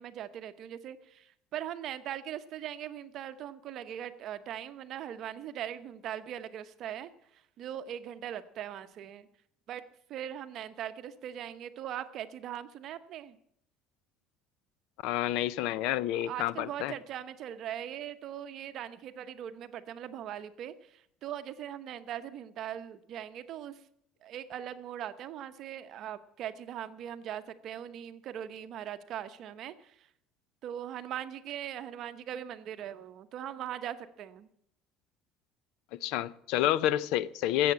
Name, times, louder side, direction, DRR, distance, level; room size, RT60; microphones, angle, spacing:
voice 1, 0.0-7.1 7.6-9.3 9.7-9.8 10.1-13.4 16.3-23.7 24.2-30.1 30.6-34.5, right 10 dB, 45° right, 0.9 m, -40 dB
voice 2, 15.0-16.9 36.0-37.7, left 13 dB, 70° left, 0.5 m, -29 dB
14.0 x 7.8 x 8.5 m
cardioid pair, 155°, 0 cm